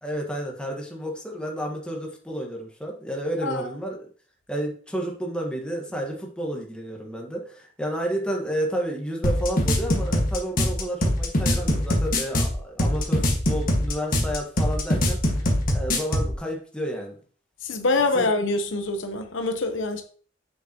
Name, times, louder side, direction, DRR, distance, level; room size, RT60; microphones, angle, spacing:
voice 1, 0.0-4.1 4.5-15.2 15.7-17.2 18.1-18.3, equal, 5° left, 1.6 m, -31 dB
sound 1, 9.2-16.3, left 1 dB, 50° left, 1.7 m, -23 dB
voice 2, 17.6-20.0, left 3 dB, 80° left, 1.0 m, -25 dB
7.7 x 6.8 x 3.0 m
head